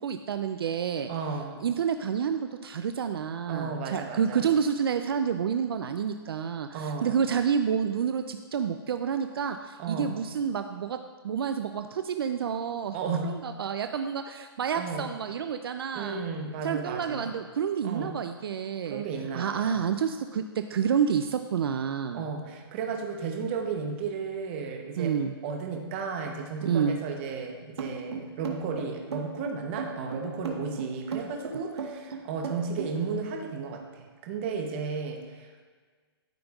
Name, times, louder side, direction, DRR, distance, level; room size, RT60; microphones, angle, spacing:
voice 1, 0.0-1.1 1.6-11.0 11.2-13.0 13.2-16.2 16.6-19.0 19.3-22.3 25.0-25.3 26.6-27.0, right 7 dB, 60° right, 8 dB, 0.4 m, -29 dB
voice 2, 1.1-1.6 3.5-4.4 6.7-7.2 9.8-10.1 12.9-13.4 14.7-15.1 15.9-17.3 17.8-18.1 18.8-19.9 22.1-25.2 25.4-35.6, right 5 dB, 25° right, 2 dB, 0.8 m, -34 dB
sound 1, 27.8-32.9, right 5 dB, 80° right, 1.2 m, -35 dB
13.0 x 5.1 x 2.4 m, 1.5 s
hypercardioid pair, 165°, 14 cm